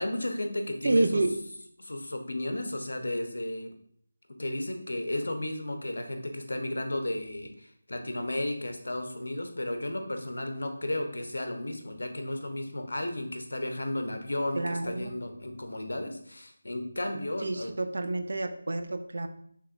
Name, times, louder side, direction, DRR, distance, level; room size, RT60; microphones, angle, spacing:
voice 1, 0.0-1.2 1.8-3.7 4.4-17.7, left 1 dB, 85° left, 5 dB, 0.8 m, -33 dB
voice 2, 0.8-1.4 14.5-15.1 17.4-19.3, right 2 dB, 65° right, 8 dB, 0.5 m, -28 dB
6.4 x 3.0 x 2.5 m, 0.66 s
figure-of-eight pair, 170°, 0 cm